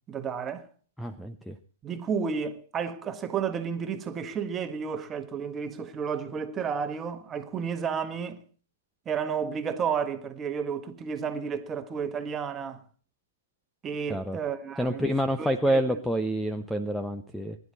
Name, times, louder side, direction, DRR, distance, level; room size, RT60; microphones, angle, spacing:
voice 1, 0.1-0.7 1.8-8.4 9.0-12.8 13.8-15.1 15.4-16.0, right 6 dB, 20° right, 1.5 m, -32 dB
voice 2, 1.0-1.6 14.1-14.4 14.8-17.6, equal, ahead, 0.7 m, -28 dB
20.5 x 11.0 x 4.2 m
hypercardioid pair, 125°, 0 cm